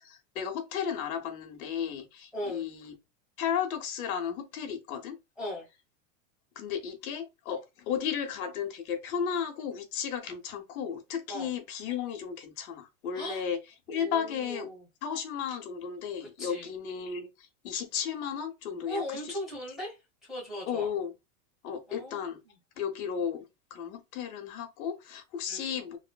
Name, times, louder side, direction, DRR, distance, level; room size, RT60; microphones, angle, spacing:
voice 1, 0.0-2.9 3.4-5.2 6.6-13.6 13.9-14.7 15.0-17.3 17.6-19.4 20.7-21.1 21.6-22.4 22.8-23.5 23.7-26.0, left 7 dB, 85° left, 1.0 m, -34 dB
voice 2, 2.3-2.7 5.4-5.7 11.3-11.5 13.1-13.4 13.9-14.9 16.4-16.7 18.9-20.0 20.3-20.9 21.9-22.6 25.5-25.7, left 1 dB, ahead, 0.8 m, -38 dB
3.1 x 2.1 x 2.2 m
supercardioid pair, 165°, 41 cm